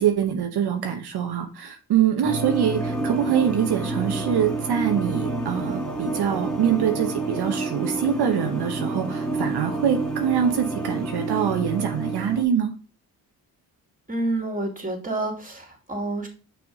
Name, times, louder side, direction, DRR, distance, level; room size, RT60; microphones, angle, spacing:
voice 1, 0.0-12.7, right 8 dB, 75° right, 4 dB, 0.9 m, -24 dB
sound 1, 2.2-12.4, right 3 dB, ahead, 1.7 m, -29 dB
voice 2, 14.1-16.3, right 2 dB, 20° right, 2 dB, 2.6 m, -28 dB
6.1 x 4.9 x 3.6 m, 0.36 s
cardioid pair, 70°, 39 cm